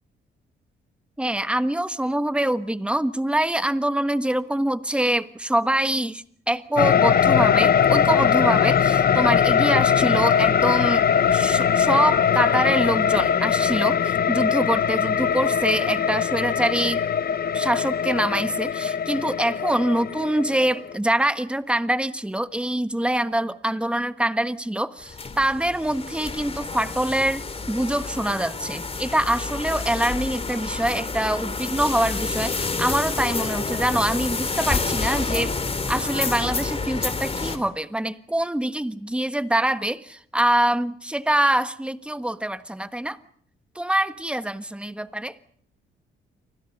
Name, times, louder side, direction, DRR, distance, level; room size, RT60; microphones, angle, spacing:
voice 1, 1.2-11.1 11.3-17.0 17.5-35.6 35.9-43.2 43.7-45.3, right 1 dB, 5° right, 10 dB, 1.4 m, -24 dB
sound 1, 6.8-20.9, left 8 dB, 50° left, 1.0 m, -21 dB
sound 2, 25.0-37.6, left 4 dB, 30° left, 3.2 m, -29 dB
30.0 x 25.0 x 5.4 m, 0.62 s
cardioid pair, 90°, 20 cm